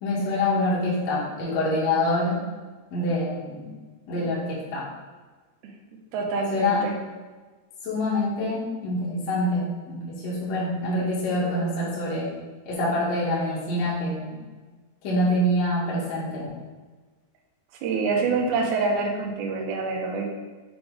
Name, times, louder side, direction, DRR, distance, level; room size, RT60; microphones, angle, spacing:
voice 1, 0.0-2.4 2.9-3.7 4.1-4.9 6.5-6.9 7.8-12.3 12.6-14.4 15.0-16.5, left 1 dB, 55° left, -7 dB, 2.1 m, -26 dB
voice 2, 6.1-6.9 17.8-20.3, right 4 dB, 80° right, 0 dB, 1.8 m, -26 dB
7.6 x 3.2 x 4.7 m, 1.3 s
omnidirectional pair, 4.8 m